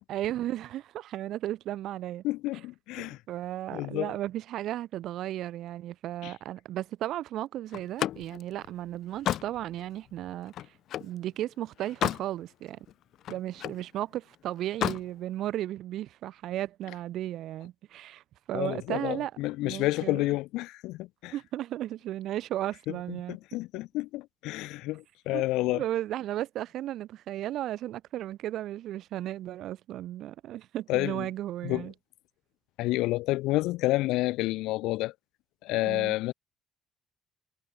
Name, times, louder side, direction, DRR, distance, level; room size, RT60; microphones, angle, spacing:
voice 1, 0.1-2.2 3.0-10.7 11.0-12.8 13.3-18.2 18.5-19.3 19.6-20.3 21.3-23.4 25.3-25.4 25.7-31.9 35.8-36.2, right 13 dB, 60° right, 3.3 m, -35 dB
voice 2, 2.2-3.2 3.7-4.1 6.2-6.3 18.5-21.3 23.1-25.8 30.9-31.3 31.6-31.9 32.8-35.1 35.6-36.3, left 19 dB, 85° left, 0.9 m, -29 dB
Slam, 7.7-11.2 11.6-12.3 12.7-13.9 14.6-15.1, left 12 dB, 55° left, 1.8 m, -33 dB
cardioid pair, 150°, 0 cm